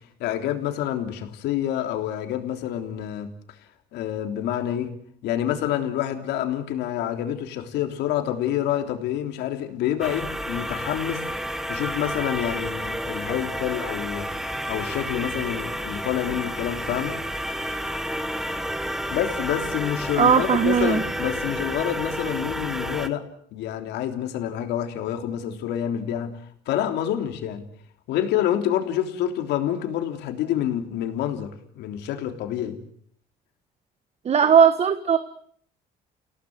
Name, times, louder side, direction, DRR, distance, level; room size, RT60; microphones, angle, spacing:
voice 1, 0.2-3.3 3.9-4.9 5.2-11.2 11.7-14.3 14.7-17.2 19.1-23.2 23.5-26.3 26.6-27.6 28.1-32.8, left 11 dB, 85° left, 6 dB, 3.4 m, -27 dB
sound 1, 10.0-23.1, equal, 5° right, 1.6 m, -30 dB
voice 2, 20.2-21.0 34.2-35.2, right 7 dB, 40° right, 11 dB, 1.3 m, -18 dB
29.5 x 17.5 x 7.9 m, 0.63 s
cardioid pair, 110°, 17 cm